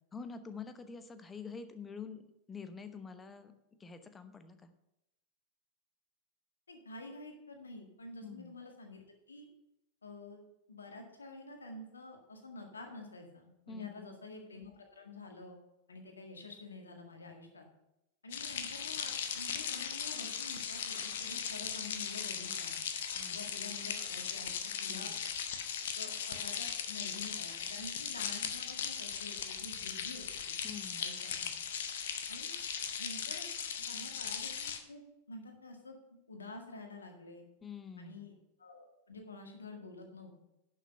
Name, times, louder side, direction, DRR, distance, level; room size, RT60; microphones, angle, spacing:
voice 1, 0.1-3.5 3.8-4.7 8.2-8.5 13.7-14.3 23.2-23.5 24.9-25.2 30.6-31.0 37.6-38.3, left 5 dB, 15° left, 10 dB, 0.9 m, -47 dB
voice 2, 6.7-9.0 9.3-9.5 10.0-10.4 10.7-15.6 15.9-17.7 18.2-22.8 23.3-25.1 25.8-30.6 31.0-31.5 32.3-32.6 33.0-33.5 33.8-35.0 35.3-37.4 38.0-38.3 38.6-40.3, left 2 dB, 75° left, 3 dB, 1.9 m, -49 dB
sound 1, 18.3-34.8, left 7 dB, 60° left, 1.0 m, -38 dB
11.0 x 6.2 x 5.6 m, 0.88 s
figure-of-eight pair, 90°, 0 cm